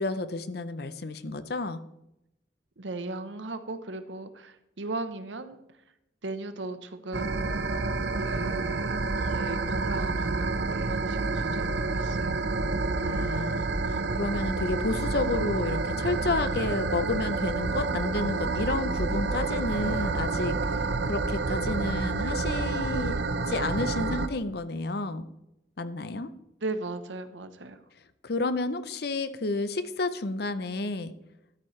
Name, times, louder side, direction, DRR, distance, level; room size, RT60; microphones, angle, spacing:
voice 1, 0.0-1.8 13.0-20.6 21.1-25.3 25.8-26.3 28.2-31.1, left 3 dB, 60° left, 12 dB, 0.7 m, -31 dB
voice 2, 2.8-5.6 6.2-7.6 8.2-12.3 26.6-27.8, right 2 dB, 85° right, 10 dB, 1.0 m, -37 dB
sound 1, 7.1-24.3, right 3 dB, 65° right, 0.7 m, -29 dB
12.5 x 8.8 x 3.3 m, 0.85 s
head